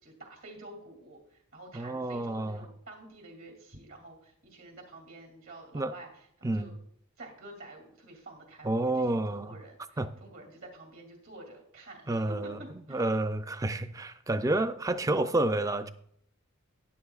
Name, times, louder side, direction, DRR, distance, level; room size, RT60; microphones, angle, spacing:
voice 1, 0.0-6.7 7.2-12.5 12.9-13.1, right 2 dB, 60° right, 2.6 m, -49 dB
voice 2, 1.7-2.6 5.7-5.9 6.4-6.7 8.6-9.5 10.0-10.1 12.1-12.6 12.9-15.9, right 2 dB, 15° right, 0.4 m, -29 dB
12.5 x 9.9 x 2.4 m
head